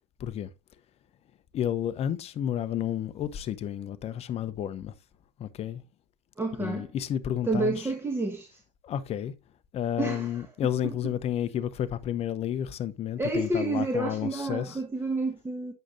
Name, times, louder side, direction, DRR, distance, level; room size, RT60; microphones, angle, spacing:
voice 1, 0.2-0.5 1.5-4.9 5.4-5.8 6.6-7.9 8.8-9.3 9.7-14.8, left 10 dB, 30° left, 0.8 m, -31 dB
voice 2, 6.4-6.9 7.4-8.6 10.0-10.4 10.8-10.9 13.2-15.7, right 2 dB, 10° right, 1.2 m, -29 dB
8.6 x 6.6 x 2.6 m
hypercardioid pair, 100°, 20 cm